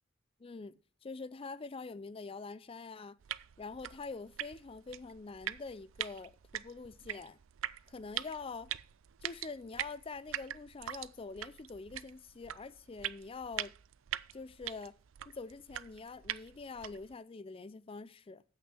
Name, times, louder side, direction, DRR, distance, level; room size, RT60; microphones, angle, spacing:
voice 1, 0.4-3.2 3.6-7.4 7.9-8.7 9.2-13.7 14.3-14.9 15.3-18.4, left 4 dB, 25° left, 0.4 m, -45 dB
sound 1, 3.2-17.1, right 12 dB, 75° right, 0.4 m, -43 dB
8.0 x 6.4 x 7.9 m
head